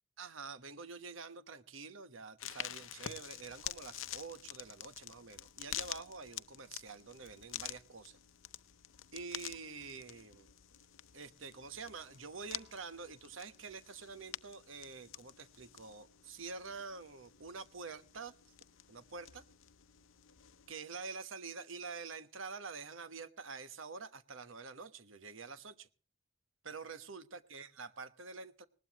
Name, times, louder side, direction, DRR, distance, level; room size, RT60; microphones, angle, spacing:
voice 1, 0.2-8.2 9.1-10.5 11.1-18.3 18.9-19.4 20.7-25.9 26.6-28.7, right 4 dB, 80° right, 1.2 m, -47 dB
sound 1, 2.4-20.7, left 12 dB, 90° left, 0.8 m, -48 dB
sound 2, 3.9-21.3, left 6 dB, 45° left, 4.5 m, -76 dB
20.0 x 19.5 x 3.0 m
head